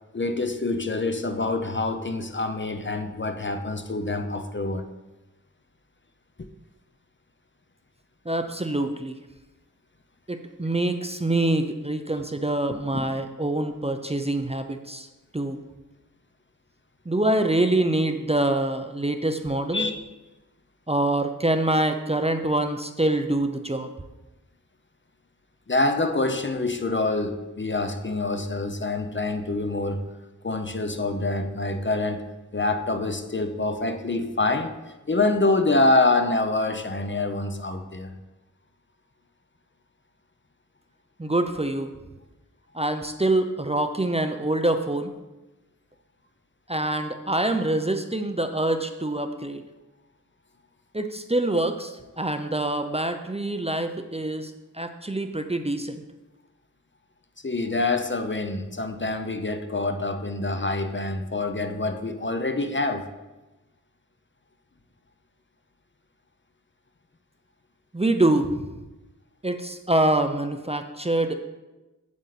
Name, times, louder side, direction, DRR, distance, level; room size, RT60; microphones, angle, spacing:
voice 1, 0.1-4.8 6.4-6.5 19.7-20.0 25.7-30.1 30.4-32.2 32.5-34.7 35.1-38.1 57.4-63.1, left 2 dB, 35° left, 7 dB, 0.7 m, -26 dB
voice 2, 8.3-9.1 10.3-15.1 15.3-15.6 17.1-19.9 20.9-23.9 41.2-42.0 42.7-45.1 46.7-49.6 50.9-56.0 67.9-68.7 69.4-71.3, right 1 dB, 20° right, 7 dB, 0.6 m, -25 dB
8.5 x 7.9 x 4.1 m, 1.1 s
wide cardioid pair, 70°, 33 cm